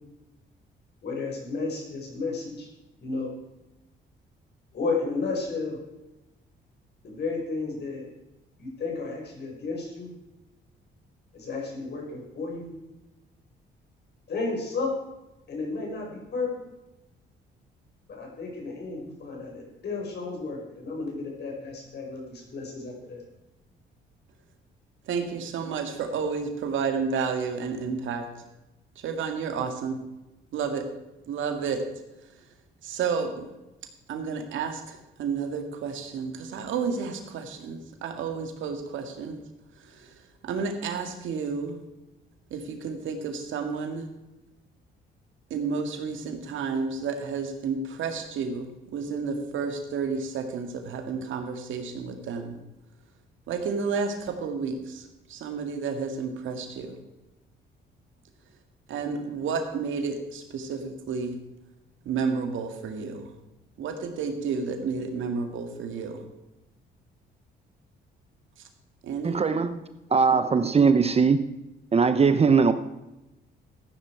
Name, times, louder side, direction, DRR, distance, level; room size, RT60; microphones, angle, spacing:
voice 1, 1.0-2.7 3.0-3.3 4.7-5.8 7.0-8.1 8.6-10.1 11.3-12.7 14.3-14.9 15.5-16.5 18.1-23.2, left 3 dB, 55° left, 0 dB, 5.0 m, -32 dB
voice 2, 25.1-28.3 29.0-30.0 30.5-30.8 31.3-31.8 32.8-33.5 34.1-39.4 39.8-40.1 40.4-41.8 42.5-44.1 45.5-52.6 53.5-57.0 58.9-61.4 62.1-63.3 63.8-66.2 69.0-69.8, right 5 dB, 75° right, 5 dB, 2.0 m, -31 dB
voice 3, 69.2-69.8 70.1-71.4 71.9-72.7, right 5 dB, 30° right, 11 dB, 0.7 m, -20 dB
14.5 x 10.0 x 4.6 m, 0.97 s
cardioid pair, 90°, 20 cm